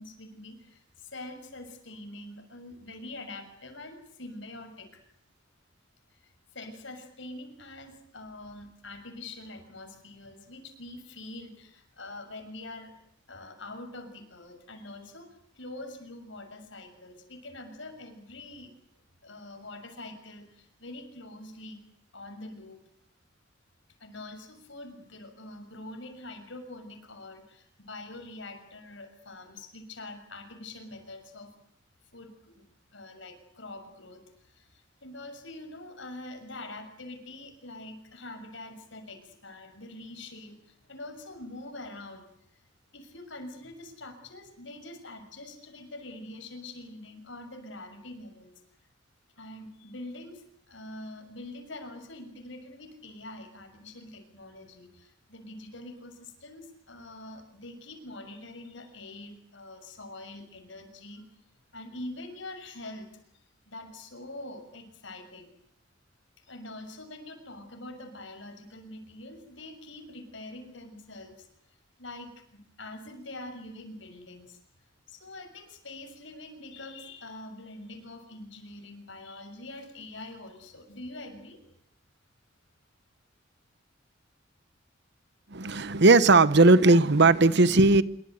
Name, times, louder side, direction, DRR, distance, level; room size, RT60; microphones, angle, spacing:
voice 1, 0.0-5.0 6.1-6.2 6.5-12.9 13.3-15.3 15.5-18.7 19.2-21.8 22.1-22.8 24.0-31.5 32.1-42.6 42.9-48.5 49.4-61.3 61.7-63.1 63.7-65.5 66.4-71.5 72.0-74.6 75.1-81.6, left 2 dB, 70° left, 6.5 m, -44 dB
voice 2, 85.5-88.0, right 3 dB, 60° right, 1.1 m, -18 dB
26.5 x 23.5 x 8.1 m
head